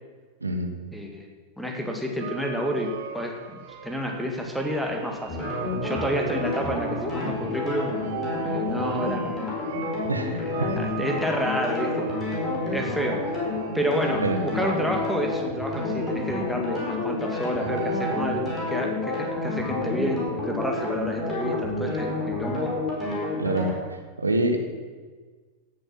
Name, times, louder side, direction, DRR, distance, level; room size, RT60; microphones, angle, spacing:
voice 1, 0.4-0.7 10.1-10.8 14.2-14.4 23.4-23.7 24.2-24.6, right 2 dB, 80° right, 4 dB, 1.5 m, -25 dB
voice 2, 0.9-1.3 1.6-5.4 5.8-8.0 8.4-9.3 10.2-12.1 12.7-13.2 13.7-22.7, equal, ahead, 2 dB, 2.1 m, -29 dB
sound 1, 2.2-18.4, right 5 dB, 55° right, 2.0 m, -38 dB
sound 2, 5.3-23.7, left 2 dB, 20° left, 5.0 m, -29 dB
17.0 x 7.8 x 6.2 m, 1.4 s
figure-of-eight pair, 90°, 0 cm